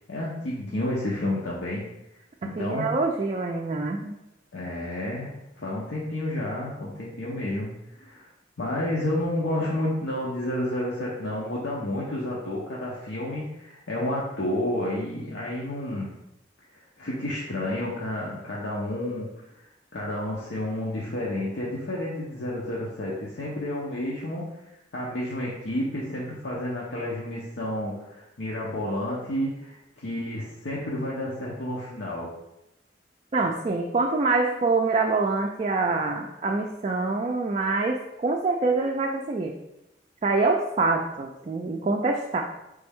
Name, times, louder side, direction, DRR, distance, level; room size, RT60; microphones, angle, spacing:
voice 1, 0.1-1.8 2.4-2.9 4.5-8.3 8.6-16.1 17.0-19.6 19.9-24.4 24.9-32.3, left 1 dB, 85° left, -5 dB, 0.8 m, -30 dB
voice 2, 2.4-4.2 33.3-39.5 40.2-42.4, right 3 dB, 35° right, 1 dB, 0.3 m, -25 dB
4.1 x 3.4 x 3.5 m, 0.90 s
head